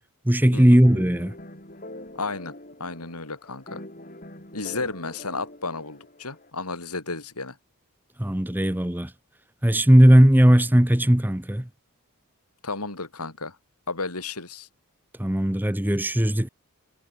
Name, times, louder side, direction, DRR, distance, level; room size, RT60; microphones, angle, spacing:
voice 1, 0.2-1.4 8.2-9.1 9.6-11.7 15.2-16.5, equal, 10° right, 0.8 m, -18 dB
sound 1, 0.8-6.5, left 1 dB, 35° left, 7.2 m, -43 dB
voice 2, 2.1-2.5 2.8-3.8 4.5-7.6 12.6-13.6 13.9-14.7, left 3 dB, 90° left, 4.3 m, -33 dB
head